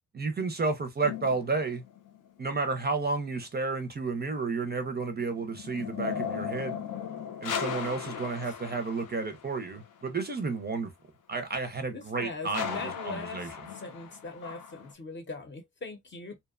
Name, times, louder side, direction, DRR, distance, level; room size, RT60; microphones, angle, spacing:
voice 1, 0.1-1.8 2.4-6.8 7.4-10.9 11.3-12.8 13.0-13.5, right 4 dB, 30° right, 0.4 m, -31 dB
sound 1, 1.0-2.3 4.8-9.7 12.5-14.9, left 8 dB, 80° left, 0.6 m, -37 dB
voice 2, 11.9-16.4, left 3 dB, 35° left, 0.7 m, -41 dB
2.7 x 2.1 x 2.3 m
wide cardioid pair, 145°, 32 cm